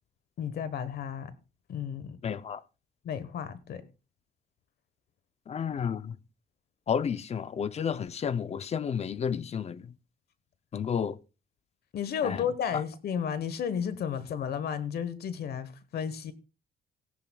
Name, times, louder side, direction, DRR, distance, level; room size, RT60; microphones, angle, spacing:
voice 1, 0.4-1.3 1.7-2.2 3.0-3.8 11.9-16.3, left 8 dB, 65° left, 1.2 m, -33 dB
voice 2, 2.2-2.6 5.5-6.1 6.9-9.8 10.7-11.2 12.2-12.4, left 7 dB, 40° left, 0.6 m, -31 dB
18.0 x 10.5 x 2.3 m
cardioid pair, 135°, 17 cm